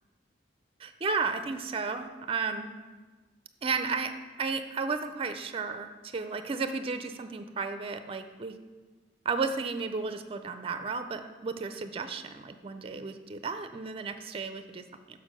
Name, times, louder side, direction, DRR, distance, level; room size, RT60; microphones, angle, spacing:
voice 1, 0.8-2.7 3.6-4.1 4.4-8.6 9.3-15.2, right 4 dB, 35° right, 9 dB, 0.4 m, -33 dB
6.4 x 5.5 x 6.2 m, 1.3 s
head